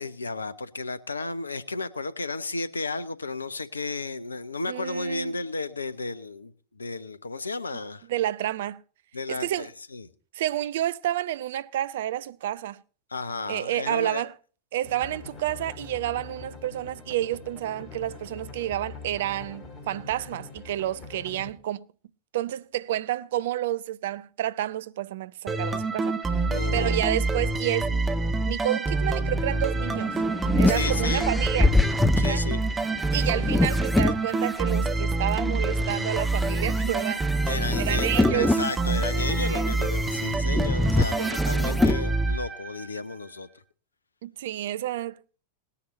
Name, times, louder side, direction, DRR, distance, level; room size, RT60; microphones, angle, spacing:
voice 1, 0.0-8.1 9.1-10.1 13.1-14.2 26.5-27.1 30.7-31.3 32.2-32.6 37.5-43.5, left 3 dB, 80° left, 0.9 m, -33 dB
voice 2, 4.7-5.3 8.1-8.8 9.3-9.7 10.3-12.8 13.5-14.3 14.7-21.8 22.3-26.2 26.7-28.1 28.5-30.2 30.5-31.8 32.2-32.4 33.1-37.3 37.8-38.6 39.4-39.7 41.2-41.4 44.2-45.2, right 13 dB, 55° right, 0.6 m, -30 dB
sound 1, 14.8-21.5, left 4 dB, 30° left, 3.4 m, -43 dB
sound 2, 25.5-43.0, right 2 dB, 15° right, 1.4 m, -26 dB
sound 3, 29.8-34.8 35.4-42.0, left 2 dB, 5° left, 0.7 m, -27 dB
19.0 x 10.0 x 4.2 m
figure-of-eight pair, 90°, 0 cm